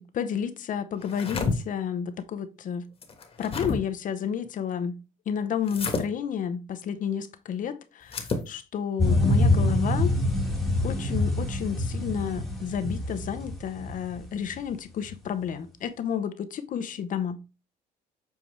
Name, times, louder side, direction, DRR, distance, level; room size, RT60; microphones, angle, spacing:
voice 1, 0.0-2.8 3.4-5.0 5.3-10.1 10.8-17.4, left 8 dB, 50° left, 0.8 m, -31 dB
sound 1, 1.0-1.6 3.0-3.8 5.7-6.0 8.0-8.5, left 4 dB, 35° left, 1.4 m, -29 dB
sound 2, 9.0-14.6 15.0-15.1, left 1 dB, ahead, 1.5 m, -25 dB
7.2 x 4.5 x 3.2 m
cardioid pair, 110°, 17 cm